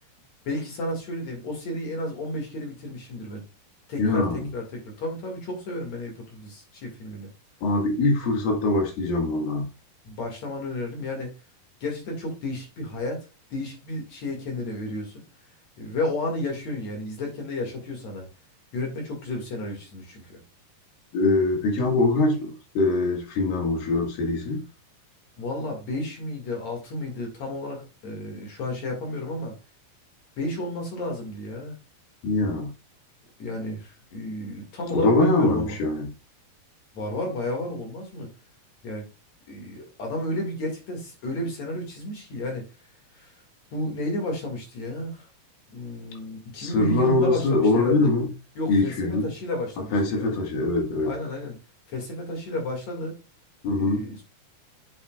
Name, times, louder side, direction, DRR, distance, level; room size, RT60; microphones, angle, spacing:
voice 1, 0.4-3.4 3.9-7.3 10.0-11.3 11.8-15.1 15.8-18.3 18.7-20.4 25.4-29.5 30.4-31.7 33.4-35.8 36.9-38.3 38.8-39.1 39.5-42.6 43.1-43.3 43.7-45.3 45.7-48.1 48.6-50.4 51.0-51.6 51.9-53.1 53.7-54.2, left 1 dB, 50° left, 3.1 m, -32 dB
voice 2, 4.0-4.5 7.6-9.7 21.1-24.6 32.2-32.7 34.9-36.1 46.6-48.3 48.7-49.3 49.9-51.1 53.6-54.1, left 2 dB, 70° left, 3.5 m, -23 dB
8.5 x 7.2 x 2.4 m
omnidirectional pair, 4.4 m